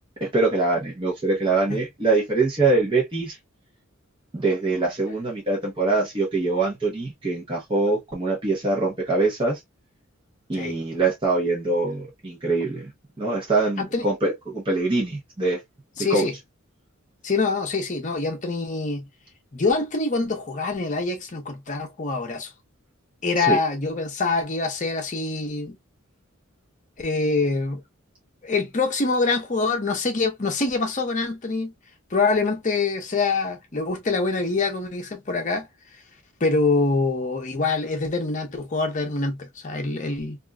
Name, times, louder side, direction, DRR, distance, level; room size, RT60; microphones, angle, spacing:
voice 1, 0.2-3.4 4.3-9.6 10.5-12.9 13.2-15.6 16.1-16.3 23.4-23.6, right 3 dB, 25° right, 0.8 m, -23 dB
voice 2, 16.0-16.3 17.2-19.1 19.5-22.5 23.2-25.8 27.0-27.8 28.4-31.7 32.1-35.7 36.4-40.4, left 3 dB, 35° left, 0.8 m, -25 dB
2.9 x 2.5 x 2.2 m
head